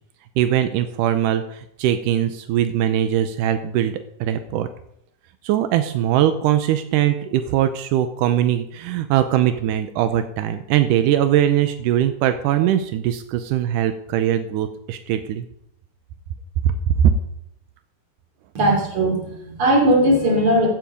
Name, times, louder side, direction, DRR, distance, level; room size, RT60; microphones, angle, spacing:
voice 1, 0.4-4.7 5.4-15.5 16.9-17.1, right 11 dB, 85° right, 9 dB, 1.9 m, -21 dB
voice 2, 18.6-20.7, right 1 dB, 35° right, -1 dB, 3.6 m, -18 dB
15.0 x 7.6 x 5.2 m, 0.75 s
omnidirectional pair, 4.3 m